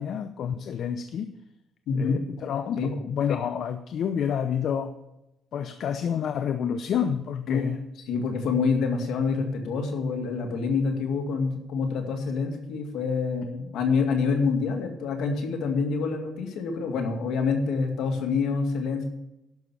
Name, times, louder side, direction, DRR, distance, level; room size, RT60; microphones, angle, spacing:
voice 1, 0.0-1.3 1.9-4.9 5.5-7.8, left 8 dB, 70° left, 9 dB, 0.7 m, -29 dB
voice 2, 1.9-2.2 2.8-2.9 7.5-7.6 8.1-19.1, left 5 dB, 85° left, 3 dB, 2.2 m, -26 dB
12.0 x 6.1 x 7.0 m, 0.89 s
cardioid pair, 90°, 0 cm